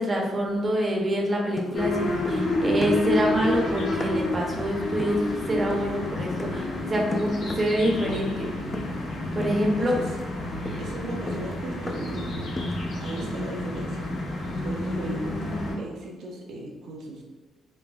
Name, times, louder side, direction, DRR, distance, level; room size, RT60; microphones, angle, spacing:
voice 1, 0.0-8.5 9.3-9.9 10.6-10.8 13.2-13.3 15.4-15.5, equal, 30° right, 0 dB, 0.6 m, -26 dB
sound 1, 1.6-2.5 2.8-4.4 5.0-5.3 5.7-6.0 6.4-6.7 7.1-7.8 8.1-8.4 8.7-9.1 9.4-9.7 10.0-12.2 12.6-12.9, left 2 dB, 30° left, 0.3 m, -36 dB
sound 2, 1.7-15.8, left 1 dB, 70° left, 0.7 m, -30 dB
voice 2, 9.8-10.1 10.8-12.3 12.9-15.4 15.8-17.2, right 2 dB, 80° right, -1 dB, 0.4 m, -37 dB
3.2 x 2.2 x 2.2 m, 1.3 s
cardioid pair, 90°, 0 cm